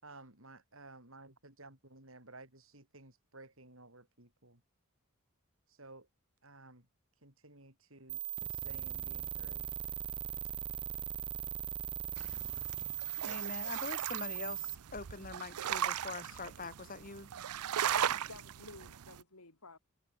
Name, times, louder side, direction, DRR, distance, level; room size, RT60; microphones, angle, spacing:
voice 1, 0.0-4.6 5.7-6.1 6.4-6.9 7.2-9.8, right 2 dB, 65° right, 6.4 m, -55 dB
sound 1, 8.1-14.7, right 10 dB, 20° right, 0.6 m, -39 dB
sound 2, 12.2-19.2, right 10 dB, 90° right, 0.5 m, -38 dB
voice 2, 13.2-17.3, left 3 dB, 40° left, 2.4 m, -44 dB
voice 3, 17.9-19.8, left 3 dB, 85° left, 5.3 m, -52 dB
head